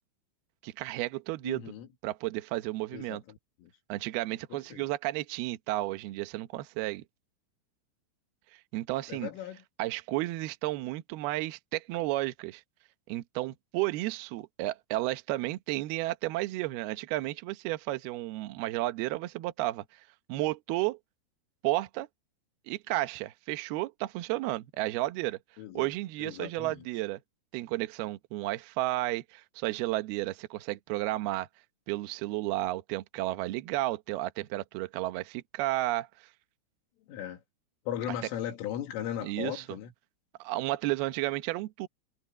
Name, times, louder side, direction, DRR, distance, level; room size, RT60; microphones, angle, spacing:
voice 1, 0.6-1.7 2.0-3.2 3.9-7.0 8.7-9.3 9.8-12.6 13.1-21.0 21.6-22.1 22.7-25.4 25.7-27.2 27.5-31.5 31.9-36.1 39.2-39.6 40.4-41.9, right 17 dB, 85° right, 2.2 m, -32 dB
voice 2, 1.4-1.9 2.9-3.7 4.5-4.9 9.1-9.6 25.6-25.9 26.2-26.9 37.1-37.4 37.9-39.9, left 10 dB, 75° left, 4.6 m, -38 dB
omnidirectional pair, 6.0 m